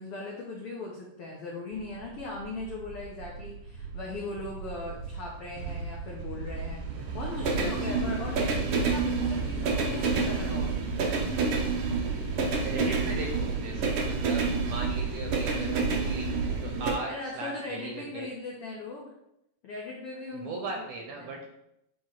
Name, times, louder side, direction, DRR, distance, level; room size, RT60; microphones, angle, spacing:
voice 1, 0.0-10.8 17.0-19.1 19.6-20.9 21.1-21.4, left 3 dB, 80° left, -2 dB, 1.2 m, -39 dB
sound 1, 1.7-16.9, right 4 dB, 90° right, 1.3 m, -29 dB
voice 2, 12.6-18.3 20.3-21.4, right 3 dB, 75° right, 1 dB, 1.7 m, -38 dB
8.9 x 3.0 x 3.8 m, 0.82 s
omnidirectional pair, 3.8 m